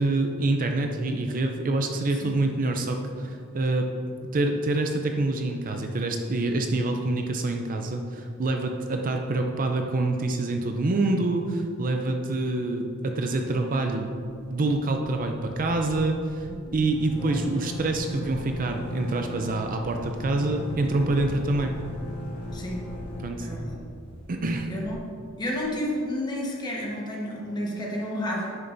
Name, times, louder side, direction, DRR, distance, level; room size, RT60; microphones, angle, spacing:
voice 1, 0.0-3.9 4.3-14.1 14.5-21.7 23.2-23.5 24.3-24.7, right 2 dB, 40° right, 4 dB, 0.5 m, -26 dB
sound 1, 14.2-14.3 14.6-14.7 15.0-25.7, left 1 dB, 80° left, 1.3 m, -38 dB
voice 2, 16.5-16.8 22.5-22.8 23.4-23.8 24.7-25.0 25.4-28.6, left 1 dB, 20° left, -3 dB, 1.3 m, -31 dB
10.5 x 6.6 x 2.6 m, 2.3 s
head